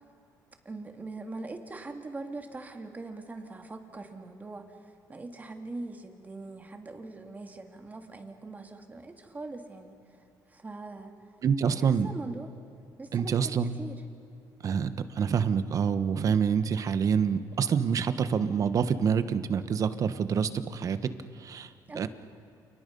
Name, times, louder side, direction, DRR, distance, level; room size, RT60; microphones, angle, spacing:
voice 1, 0.6-10.2 10.5-11.1 11.6-12.5 13.0-14.0 21.9-22.1, right 3 dB, 20° right, 4 dB, 2.6 m, -42 dB
voice 2, 11.4-12.1 13.1-13.8 14.6-21.0 21.4-22.1, right 7 dB, 50° right, 11 dB, 1.3 m, -27 dB
29.5 x 29.5 x 5.5 m, 2.6 s
cardioid pair, 110°, 7 cm